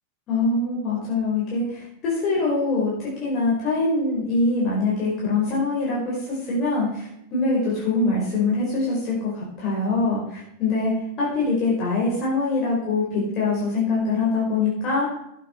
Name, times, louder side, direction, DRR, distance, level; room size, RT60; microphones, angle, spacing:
voice 1, 0.3-10.9 11.2-15.1, left 3 dB, 35° left, -5 dB, 4.6 m, -23 dB
12.0 x 8.5 x 4.6 m, 0.76 s
figure-of-eight pair, 90°, 0 cm